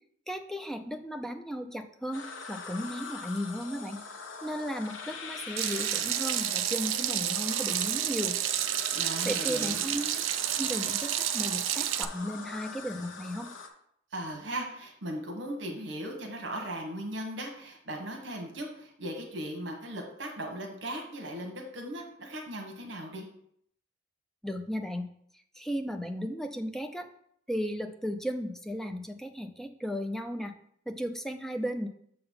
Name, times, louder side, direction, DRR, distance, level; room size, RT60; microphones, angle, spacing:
voice 1, 0.3-4.0 4.4-8.4 9.3-10.2 10.6-13.5 24.4-25.1 25.6-27.1 27.5-30.5 30.9-31.9, equal, ahead, 6 dB, 0.4 m, -35 dB
sound 1, 2.1-13.7, left 4 dB, 80° left, 0.8 m, -43 dB
Water tap faucet / Sink (filling or washing), 5.6-12.0, right 12 dB, 80° right, 0.4 m, -30 dB
voice 2, 8.9-9.8 14.1-23.3, right 1 dB, 65° right, 2 dB, 1.2 m, -38 dB
6.8 x 3.9 x 5.5 m, 0.69 s
head